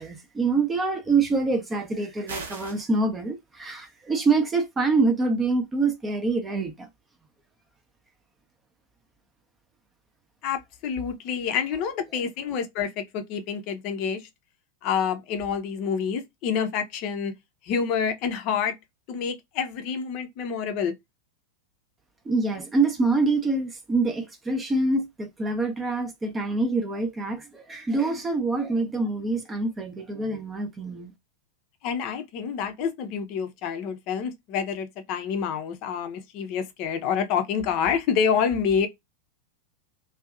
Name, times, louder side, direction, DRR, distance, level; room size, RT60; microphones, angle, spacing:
voice 1, 0.0-6.9 12.1-12.2 22.3-31.1, right 3 dB, 15° right, 0.6 m, -25 dB
sound 1, 2.3-2.9, right 4 dB, 65° right, 0.8 m, -37 dB
voice 2, 10.4-14.2 14.8-17.3 17.7-18.7 19.1-20.9 31.8-38.9, left 7 dB, 40° left, 0.6 m, -27 dB
2.6 x 2.3 x 2.3 m
figure-of-eight pair, 90°, 0 cm